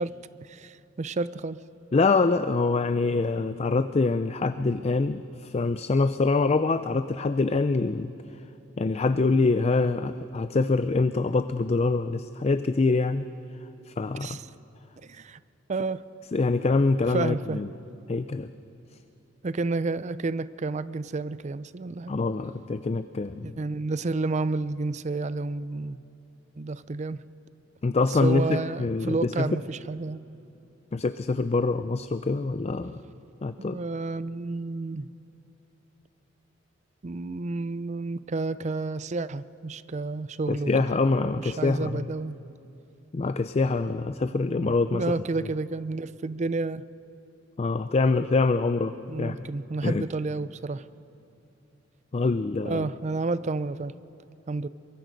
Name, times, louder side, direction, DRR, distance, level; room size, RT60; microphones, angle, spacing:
voice 1, 0.0-1.6 14.2-14.4 15.0-15.4 15.7-16.0 17.1-17.6 19.4-22.1 23.4-26.0 26.6-27.2 28.2-30.2 33.6-35.1 37.0-40.7 41.4-42.4 44.6-46.8 49.1-50.9 52.6-53.9 54.5-54.7, right 3 dB, 35° right, 16 dB, 0.5 m, -30 dB
voice 2, 1.9-8.1 8.8-13.3 13.9-14.4 16.3-17.7 18.1-18.5 22.1-23.5 27.8-29.5 30.9-33.0 33.4-33.8 40.5-42.1 43.1-45.0 47.6-49.4 49.8-50.0 52.1-52.9, left 3 dB, 35° left, 11 dB, 0.4 m, -25 dB
23.5 x 23.0 x 5.2 m, 2.8 s
head